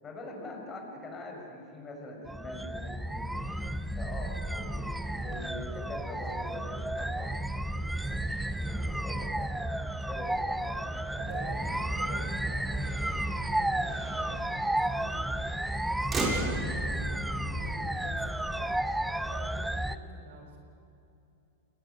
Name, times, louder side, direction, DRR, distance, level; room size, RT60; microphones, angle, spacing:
voice 1, 0.0-3.3 3.9-7.3 7.7-8.2 8.6-9.7 10.0-11.4, left 2 dB, 20° left, 0 dB, 6.8 m, -44 dB
sound 1, 2.3-20.0, right 1 dB, 5° right, 0.8 m, -32 dB
Motor vehicle (road), 3.3-19.1, right 2 dB, 20° right, 7.2 m, -43 dB
voice 2, 11.2-15.5 16.0-20.6, right 2 dB, 75° right, 4 dB, 6.8 m, -46 dB
28.5 x 20.5 x 9.4 m, 2.7 s
supercardioid pair, 140°, 0 cm